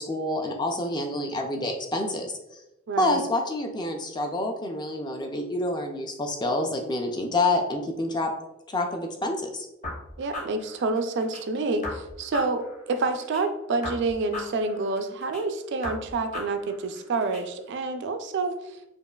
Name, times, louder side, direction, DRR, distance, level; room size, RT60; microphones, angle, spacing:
voice 1, 0.0-2.3 3.0-8.3 8.7-9.7, left 2 dB, 20° left, 3 dB, 0.4 m, -27 dB
voice 2, 2.9-3.2 10.2-18.8, right 3 dB, 55° right, 7 dB, 0.3 m, -28 dB
sound 1, 9.8-11.4 11.8-13.4 13.8-15.4 15.8-17.4, left 2 dB, 35° left, 1.0 m, -38 dB
5.2 x 2.4 x 2.3 m, 0.90 s
head